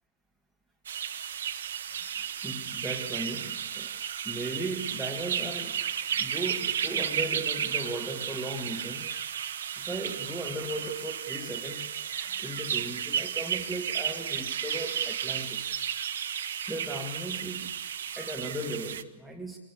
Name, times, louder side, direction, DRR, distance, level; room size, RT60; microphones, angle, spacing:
sound 1, 0.9-19.0, right 8 dB, 60° right, 0.9 m, -33 dB
voice 1, 2.4-4.0 4.2-5.9 6.2-9.1 9.8-11.9 12.2-15.7 16.7-17.7 18.2-19.6, right 1 dB, ahead, 0 dB, 1.7 m, -37 dB
26.0 x 20.5 x 8.4 m, 1.1 s
figure-of-eight pair, 105°, 0 cm